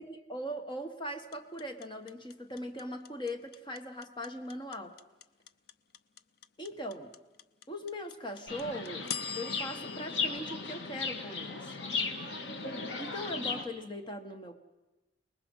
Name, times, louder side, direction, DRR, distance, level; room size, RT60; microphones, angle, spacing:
voice 1, 0.0-5.0 6.6-7.1 7.7-11.8 13.0-14.6, equal, 25° left, 6 dB, 1.7 m, -40 dB
sound 1, 1.3-11.5, left 8 dB, 60° left, 0.6 m, -43 dB
Chirp tweet, 8.5-13.6, left 4 dB, 75° left, 2.0 m, -36 dB
29.5 x 20.5 x 5.7 m, 1.1 s
head